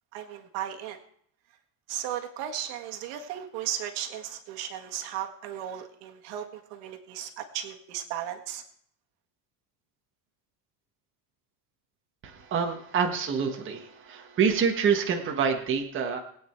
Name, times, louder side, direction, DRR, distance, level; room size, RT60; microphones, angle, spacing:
voice 1, 0.1-1.0 1.9-8.6, right 10 dB, 70° right, 5 dB, 1.7 m, -35 dB
voice 2, 12.2-16.2, right 6 dB, 25° right, 2 dB, 1.4 m, -27 dB
20.0 x 8.8 x 4.5 m, 0.65 s
cardioid pair, 170°, 47 cm